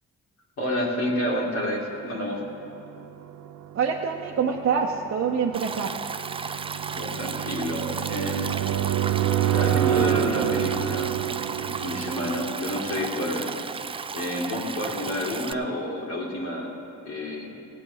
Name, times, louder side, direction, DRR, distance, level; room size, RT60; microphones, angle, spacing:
voice 1, 0.6-2.4 6.9-8.7 9.5-11.1 11.4-13.5 14.1-16.7 17.0-17.5, left 1 dB, 60° left, -4 dB, 2.5 m, -29 dB
sound 1, 2.6-13.4, right 12 dB, 75° right, 0.6 m, -28 dB
voice 2, 3.7-6.0, right 6 dB, 45° right, -1 dB, 0.9 m, -25 dB
Stream, 5.5-15.5, right 5 dB, 20° right, 0.3 m, -34 dB
17.5 x 8.3 x 5.1 m, 2.7 s
cardioid pair, 90°, 30 cm